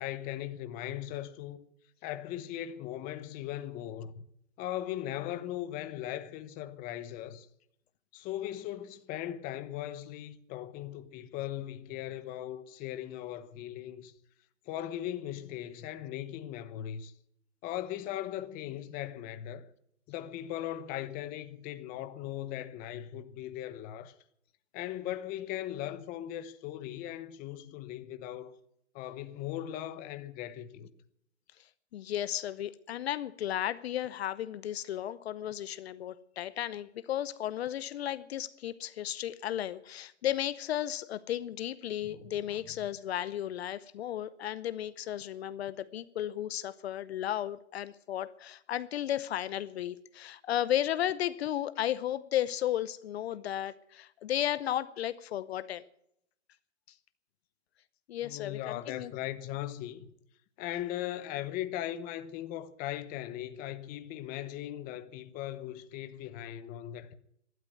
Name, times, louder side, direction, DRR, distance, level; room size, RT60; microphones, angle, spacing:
voice 1, 0.0-1.6 2.0-4.2 4.6-7.5 8.1-14.1 14.7-17.1 17.6-19.7 20.1-24.1 24.7-28.5 28.9-30.9 42.0-42.6 58.2-60.1 60.6-67.1, left 12 dB, 25° left, 0.9 m, -39 dB
voice 2, 31.9-55.8 58.1-59.1, left 12 dB, 60° left, 0.8 m, -34 dB
12.5 x 9.9 x 9.2 m
hypercardioid pair, 145°, 36 cm